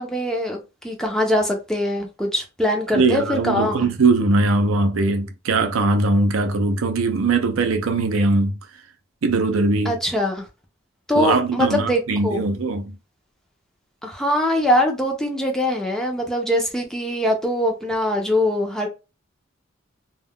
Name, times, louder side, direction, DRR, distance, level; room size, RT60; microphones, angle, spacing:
voice 1, 0.0-3.9 9.8-10.5 11.1-12.5 14.0-18.9, left 1 dB, 5° left, 0.5 m, -22 dB
voice 2, 2.9-8.6 9.2-10.0 11.1-13.0, right 3 dB, 75° right, 0.5 m, -20 dB
2.2 x 2.1 x 3.5 m
head